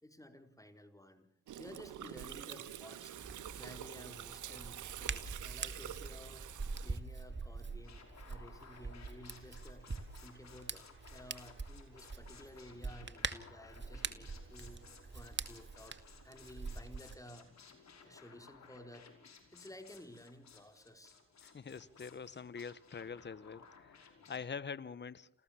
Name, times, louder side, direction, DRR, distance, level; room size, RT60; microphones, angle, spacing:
voice 1, 0.0-3.2 3.6-6.5 6.8-14.8 15.1-17.5 18.0-19.1 19.5-21.2, left 1 dB, 10° left, 4.2 m, -54 dB
Gurgling, 1.5-7.0, right 11 dB, 85° right, 1.5 m, -47 dB
Hands, 3.1-17.2, right 4 dB, 40° right, 2.3 m, -45 dB
sound 1, 7.8-24.5, left 5 dB, 65° left, 5.4 m, -59 dB
voice 2, 21.4-25.3, left 6 dB, 35° left, 1.1 m, -45 dB
29.0 x 15.0 x 7.2 m
supercardioid pair, 45°, 30 cm